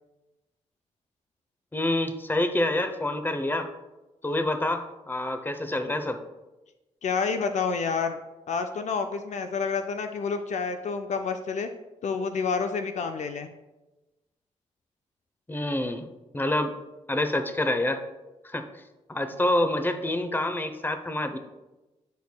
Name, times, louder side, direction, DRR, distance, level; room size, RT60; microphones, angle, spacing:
voice 1, 1.7-3.7 4.2-6.2 15.5-16.1 16.3-16.7 17.1-18.0 18.4-18.7 19.1-21.4, left 1 dB, 15° left, 8 dB, 0.7 m, -27 dB
voice 2, 7.0-8.2 8.5-11.7 12.0-13.5, left 5 dB, 60° left, 7 dB, 0.5 m, -29 dB
11.5 x 4.5 x 2.2 m, 1.1 s
supercardioid pair, 55°, 13 cm